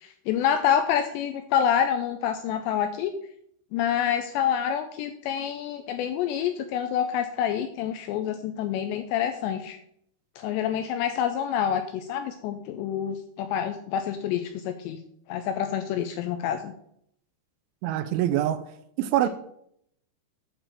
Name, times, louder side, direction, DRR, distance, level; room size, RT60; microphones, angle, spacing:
voice 1, 0.0-3.1 3.7-9.8 10.4-15.0 15.3-16.7, left 9 dB, 85° left, 8 dB, 2.5 m, -27 dB
voice 2, 17.8-18.6 19.0-19.3, right 12 dB, 85° right, 12 dB, 2.9 m, -24 dB
9.1 x 7.0 x 4.3 m, 0.72 s
omnidirectional pair, 5.5 m